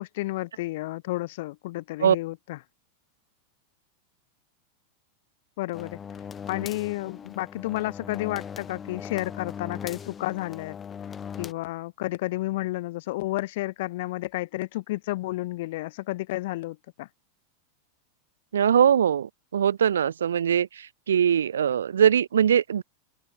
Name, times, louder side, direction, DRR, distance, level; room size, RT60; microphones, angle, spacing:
voice 1, 0.0-2.6 5.6-6.0 6.5-10.8 11.4-17.1, left 18 dB, 50° left, 5.3 m, -31 dB
sound 1, 5.7-11.5, left 7 dB, 20° left, 4.2 m, -39 dB
voice 2, 18.5-22.8, right 8 dB, 65° right, 1.3 m, -22 dB
open air
figure-of-eight pair, 90°, 0 cm